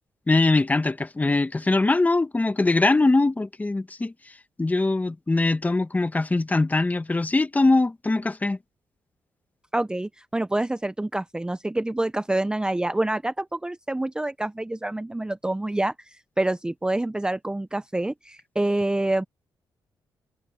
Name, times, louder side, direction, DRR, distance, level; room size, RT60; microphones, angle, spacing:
voice 1, 0.3-4.1 4.6-8.6, left 2 dB, 20° left, 1.4 m, -22 dB
voice 2, 9.7-15.9 16.4-19.2, right 1 dB, 10° right, 0.7 m, -27 dB
cardioid pair, 90°, 8 cm